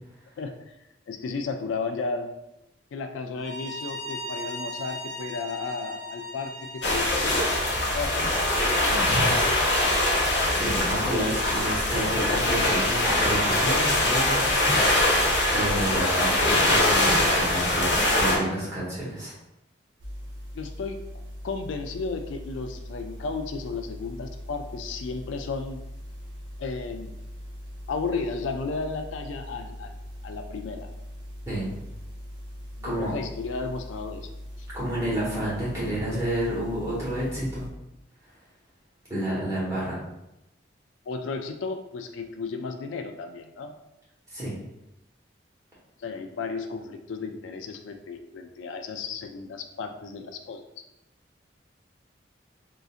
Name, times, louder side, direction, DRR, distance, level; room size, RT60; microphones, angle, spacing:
voice 1, 1.1-2.3 2.9-7.5 7.9-8.3 8.7-9.4 20.6-21.0 21.4-25.8 26.6-27.1 27.9-30.0 30.2-30.9 32.9-34.3 34.6-34.7 41.1-43.7 46.0-50.8, left 4 dB, 85° left, 6 dB, 0.3 m, -34 dB
Bowed string instrument, 3.4-8.9, equal, 40° right, 1.2 m, -38 dB
sound 1, 6.8-18.4, left 1 dB, 65° left, 0.8 m, -23 dB
voice 2, 10.6-15.0 15.5-19.3 31.5-31.7 32.8-33.1 34.7-37.7 39.1-40.0 44.3-44.6, right 1 dB, 15° right, -8 dB, 1.3 m, -30 dB
sound 2, 20.0-37.7, equal, 80° right, 0.7 m, -41 dB
3.8 x 2.5 x 2.4 m, 0.89 s
head